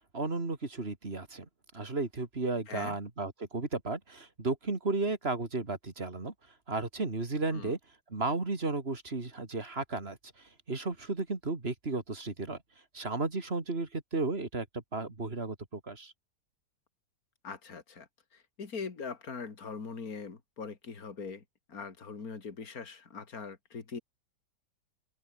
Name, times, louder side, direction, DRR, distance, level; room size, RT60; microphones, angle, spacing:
voice 1, 0.0-1.5 1.7-6.3 6.7-7.8 8.1-12.6 12.9-16.1, right 3 dB, 35° right, 3.0 m, -34 dB
voice 2, 17.4-24.0, left 5 dB, 55° left, 3.0 m, -42 dB
omnidirectional pair, 1.9 m